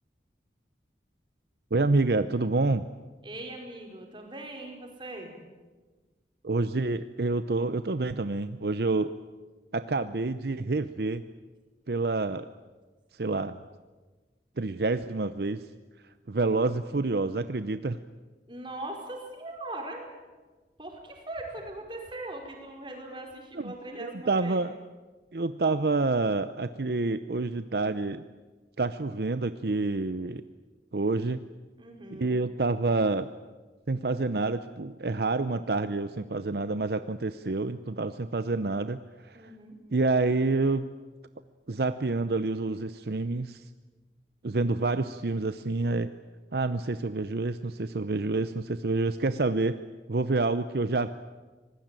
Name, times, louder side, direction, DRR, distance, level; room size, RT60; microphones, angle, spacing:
voice 1, 1.7-2.8 6.4-9.1 9.7-11.2 11.9-12.5 13.1-13.6 14.6-15.7 16.3-18.0 23.5-24.7 25.3-28.2 28.8-30.4 30.9-31.4 32.1-33.3 33.9-39.5 39.9-40.9 41.7-43.6 44.4-46.1 46.5-49.8 50.1-51.1, right 3 dB, 65° right, 12 dB, 0.7 m, -28 dB
voice 2, 3.2-5.3 18.5-20.1 20.8-24.6 31.8-32.4 39.3-39.8, right 1 dB, 25° right, 2 dB, 4.8 m, -40 dB
25.5 x 20.0 x 9.0 m, 1.3 s
head